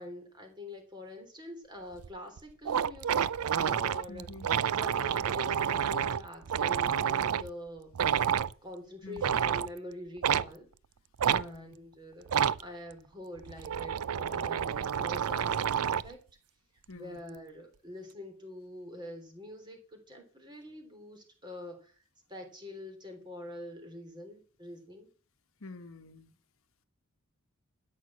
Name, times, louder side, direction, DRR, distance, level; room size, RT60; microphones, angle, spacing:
voice 1, 0.0-3.3 3.6-4.3 4.7-7.9 8.6-10.7 11.2-16.2 16.9-21.9 22.3-25.1, left 1 dB, 20° right, 3.4 m, -45 dB
sound 1, 2.0-2.1 2.4-2.5 2.7-7.5 7.9-8.5 9.2-9.7 10.2-10.5 11.2-11.4 12.3-12.6 13.4-16.1, right 8 dB, 85° right, 0.5 m, -29 dB
voice 2, 4.1-4.5 9.0-9.3 11.3-11.7 16.9-17.2 25.6-26.3, left 3 dB, 70° left, 1.1 m, -47 dB
12.5 x 6.6 x 7.4 m
head